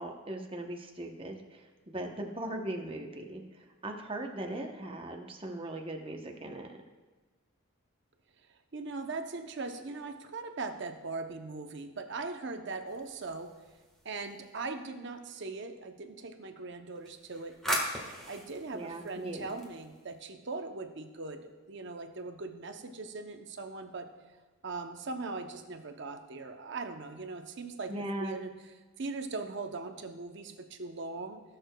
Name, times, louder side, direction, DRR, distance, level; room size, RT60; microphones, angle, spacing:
voice 1, 0.0-6.8 18.7-19.5 27.9-28.4, right 1 dB, 25° right, 2 dB, 0.8 m, -39 dB
voice 2, 8.7-13.6 14.0-17.8 18.3-24.1 24.6-27.9 28.2-28.5 29.0-31.4, right 3 dB, 55° right, 6 dB, 0.7 m, -40 dB
sound 1, 12.9-14.6 16.9-20.2, equal, ahead, 1.3 m, -39 dB
18.5 x 6.5 x 2.2 m, 1.2 s
head